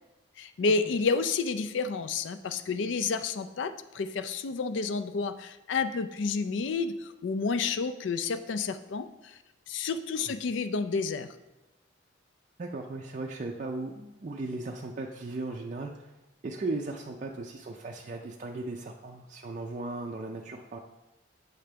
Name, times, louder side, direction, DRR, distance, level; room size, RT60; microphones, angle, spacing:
voice 1, 0.4-9.4 9.7-11.3, left 4 dB, 70° left, 11 dB, 0.4 m, -30 dB
voice 2, 12.6-16.1 16.4-20.8, right 2 dB, 40° right, 0 dB, 0.4 m, -37 dB
8.0 x 3.3 x 5.1 m, 0.99 s
head